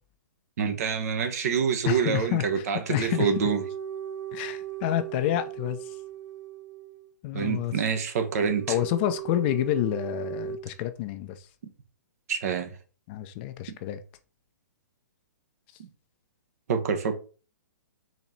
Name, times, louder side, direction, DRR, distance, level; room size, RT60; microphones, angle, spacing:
voice 1, 0.6-3.6 7.3-8.8 12.3-12.7 13.7-13.8 15.8-15.9 16.7-17.2, right 6 dB, 55° right, 1.0 m, -26 dB
voice 2, 1.9-3.3 4.3-5.9 7.2-7.7 8.7-11.4 13.1-14.0, left 13 dB, 35° left, 0.5 m, -29 dB
sound 1, 3.1-7.1 8.4-10.6, right 11 dB, 80° right, 2.6 m, -37 dB
4.4 x 3.0 x 4.0 m
figure-of-eight pair, 120°, 10 cm